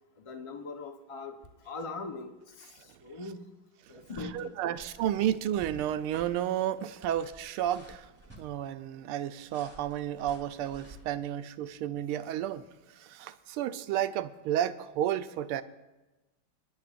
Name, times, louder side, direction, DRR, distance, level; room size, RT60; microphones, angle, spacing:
voice 1, 0.2-1.3 1.6-2.3 2.6-3.5 3.9-4.7, left 3 dB, 30° left, 4 dB, 0.5 m, -41 dB
sound 1, 4.1-4.5 4.8-5.1 5.5-5.8 6.1-6.3 7.0-8.4 9.5-11.0, right 1 dB, 5° right, 3.3 m, -51 dB
voice 2, 4.3-8.1 8.4-12.6 12.9-15.6, right 11 dB, 85° right, 11 dB, 1.5 m, -32 dB
29.5 x 10.5 x 2.5 m, 1.1 s
omnidirectional pair, 2.4 m